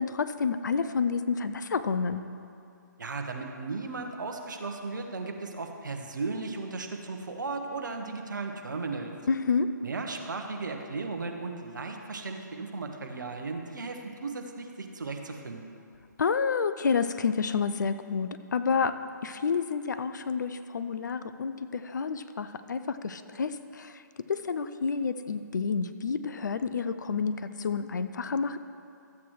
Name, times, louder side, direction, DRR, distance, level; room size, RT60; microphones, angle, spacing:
voice 1, 0.0-2.2 9.3-9.7 16.2-19.0 19.2-24.0 24.3-28.6, left 5 dB, 65° left, 11 dB, 0.5 m, -29 dB
voice 2, 3.0-9.1 9.8-15.6, right 3 dB, 70° right, 4 dB, 1.1 m, -36 dB
13.5 x 8.4 x 3.1 m, 2.6 s
figure-of-eight pair, 140°, 10 cm